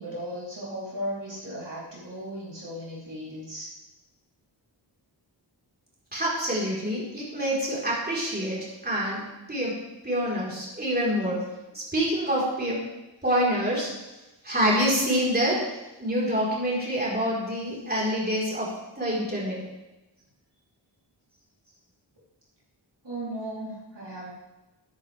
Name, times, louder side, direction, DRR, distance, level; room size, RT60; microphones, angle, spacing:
voice 1, 0.0-3.7 23.0-24.3, equal, 65° right, -7 dB, 3.9 m, -36 dB
voice 2, 6.1-9.2 9.5-9.8 10.0-11.4 11.7-12.8 13.2-13.9 14.4-15.6 16.0-19.6, equal, 20° right, -6 dB, 4.5 m, -26 dB
13.5 x 9.9 x 3.5 m, 1.0 s
wide cardioid pair, 60°, 45 cm